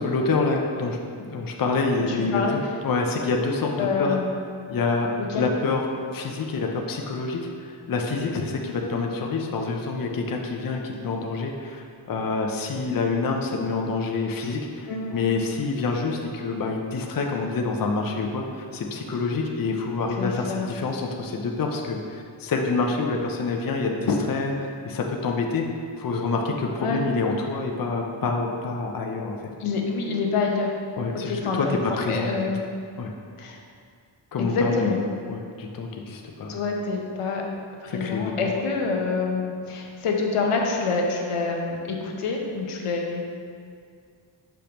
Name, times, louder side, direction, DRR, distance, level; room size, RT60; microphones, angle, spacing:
voice 1, 0.0-4.2 4.7-5.9 6.1-7.4 7.9-25.6 26.0-29.4 31.0-32.4 33.0-33.1 34.3-35.0 35.3-36.6 37.9-38.5, left 3 dB, 45° left, 1 dB, 0.6 m, -27 dB
voice 2, 2.0-2.6 3.8-4.4 5.2-5.4 14.9-15.3 20.2-20.7 26.8-27.0 29.6-30.7 31.2-32.6 33.4-33.6 34.4-35.0 36.5-37.4 37.8-43.2, left 4 dB, 90° left, 0 dB, 0.8 m, -26 dB
6.3 x 5.2 x 2.9 m, 2.3 s
wide cardioid pair, 130°, 50 cm